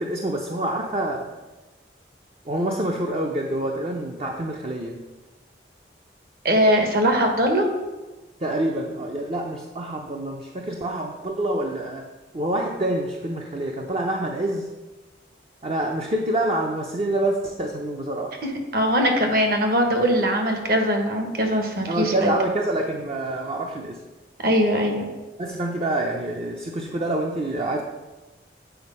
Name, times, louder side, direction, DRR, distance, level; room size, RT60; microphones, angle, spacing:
voice 1, 0.0-1.3 2.5-5.0 8.4-12.1 12.3-14.7 15.6-18.4 21.9-24.0 25.4-27.8, right 1 dB, 35° right, 1 dB, 0.6 m, -26 dB
voice 2, 6.4-7.7 18.4-22.3 24.4-25.0, equal, 55° right, 4 dB, 1.2 m, -21 dB
7.9 x 4.5 x 5.4 m, 1.1 s
head